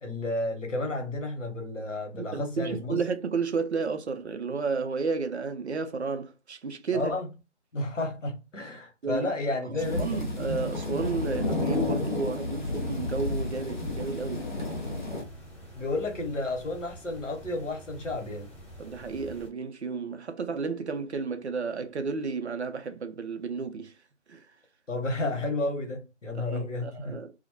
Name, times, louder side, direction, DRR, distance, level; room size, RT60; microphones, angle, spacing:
voice 1, 0.0-3.0 6.9-7.3 7.7-10.2 15.7-18.5 24.9-27.2, left 2 dB, 85° left, 1.0 m, -32 dB
voice 2, 2.1-7.1 9.0-9.3 9.7-14.5 18.8-23.9 24.3-24.5 26.3-27.3, right 5 dB, 65° right, 0.5 m, -32 dB
sound 1, 9.8-15.2, left 2 dB, 40° left, 0.6 m, -31 dB
sound 2, 12.6-19.5, right 1 dB, 10° left, 1.1 m, -48 dB
2.2 x 2.1 x 2.8 m
figure-of-eight pair, 165°, 36 cm